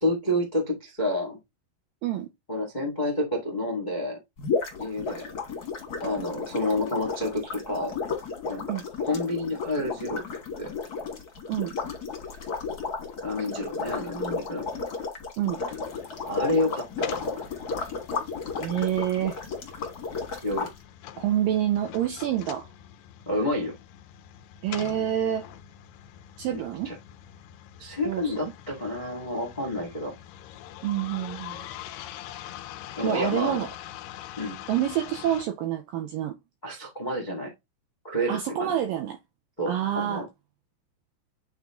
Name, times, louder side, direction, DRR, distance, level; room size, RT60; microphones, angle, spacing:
voice 1, 0.0-1.4 2.5-4.2 4.8-5.3 6.0-8.0 8.5-8.6 9.0-10.2 10.6-10.8 13.2-14.7 16.2-17.5 20.4-20.7 23.2-23.7 26.5-26.9 27.8-30.1 33.0-33.6 34.4-34.6 36.6-37.5 38.0-38.7 39.6-40.3, left 1 dB, 35° left, 0.7 m, -29 dB
sound 1, 4.4-20.7, left 4 dB, 50° left, 1.1 m, -33 dB
sound 2, 15.8-35.5, left 12 dB, 85° left, 2.0 m, -44 dB
voice 2, 18.6-19.4 21.2-22.7 24.6-25.5 26.4-27.0 28.1-28.5 30.8-31.7 33.0-33.7 34.7-36.4 38.3-39.2 39.7-40.2, right 11 dB, 85° right, 2.0 m, -27 dB
9.2 x 3.2 x 3.6 m
omnidirectional pair, 4.8 m